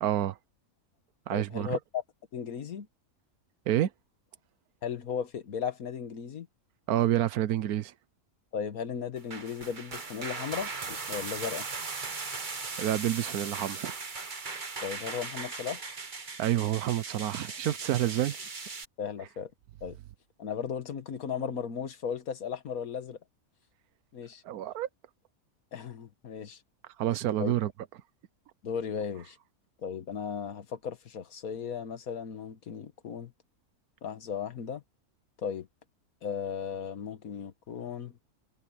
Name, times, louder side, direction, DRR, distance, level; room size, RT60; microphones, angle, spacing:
voice 1, 0.0-0.4 1.3-1.8 3.7-3.9 6.9-7.9 12.8-13.9 16.4-18.4 24.5-24.9 27.0-27.7, right 12 dB, 85° right, 1.2 m, -28 dB
voice 2, 1.3-2.0 2.3-2.9 4.8-6.5 8.5-11.7 14.8-15.8 19.0-19.5 19.8-20.0 20.4-23.2 24.1-24.4 25.7-26.6 27.4-27.5 28.6-29.4 29.8-33.3 34.0-34.8 35.4-35.7 36.2-38.2, left 7 dB, 75° left, 1.8 m, -36 dB
sound 1, 9.2-18.8, right 4 dB, 35° right, 1.4 m, -38 dB
omnidirectional pair, 1.5 m